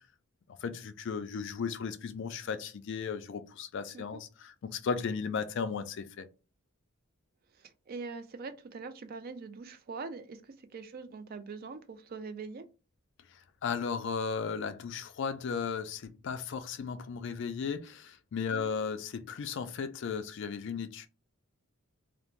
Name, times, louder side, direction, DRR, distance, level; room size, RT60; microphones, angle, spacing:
voice 1, 0.6-6.3 13.6-21.1, left 6 dB, 55° left, 0.4 m, -35 dB
voice 2, 7.6-12.7 18.5-18.7, right 4 dB, 45° right, 0.3 m, -43 dB
2.5 x 2.0 x 3.0 m
head